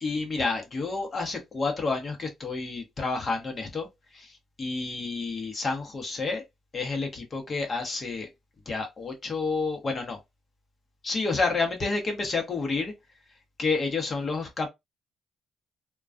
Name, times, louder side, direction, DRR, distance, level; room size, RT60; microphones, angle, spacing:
voice 1, 0.0-3.9 4.1-6.4 6.7-8.3 8.7-10.2 11.0-12.9 13.6-14.7, left 3 dB, 40° left, 0.9 m, -29 dB
2.3 x 2.2 x 2.4 m
cardioid pair, 90°, 0 cm